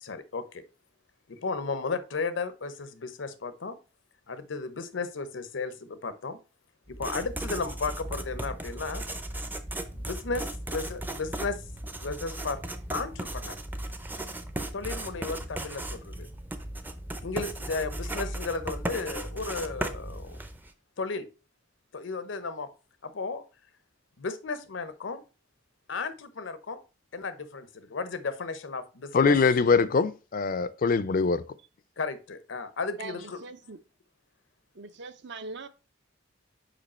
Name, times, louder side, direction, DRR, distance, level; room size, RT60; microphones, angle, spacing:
voice 1, 0.0-0.6 1.3-3.8 4.3-6.4 6.9-9.0 9.9-11.6 12.0-12.6 12.9-13.5 14.7-16.3 17.2-20.4 21.0-21.3 21.9-22.7 23.0-23.4 24.2-25.2 25.9-26.8 27.1-29.4 32.0-33.4, left 4 dB, 80° left, 0.8 m, -34 dB
Writing, 6.9-20.7, right 1 dB, 10° right, 0.5 m, -36 dB
voice 2, 29.1-31.4, left 4 dB, 45° left, 0.4 m, -23 dB
voice 3, 33.0-33.8 34.7-35.7, right 3 dB, 65° right, 0.6 m, -41 dB
5.1 x 5.0 x 4.2 m
head